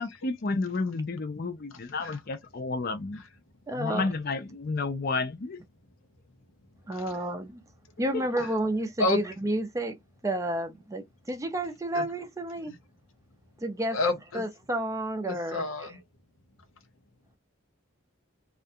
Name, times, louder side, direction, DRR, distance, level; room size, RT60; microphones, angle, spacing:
voice 1, 0.0-3.2 3.7-5.6 8.1-8.2, left 3 dB, 50° left, 0.5 m, -31 dB
voice 2, 3.7-4.1 6.9-7.6 8.0-10.0 10.2-12.7 13.6-14.0 14.3-15.7, right 1 dB, 15° right, 0.4 m, -30 dB
voice 3, 13.9-14.4 15.3-16.0, left 2 dB, 80° left, 0.7 m, -29 dB
2.4 x 2.2 x 2.7 m
head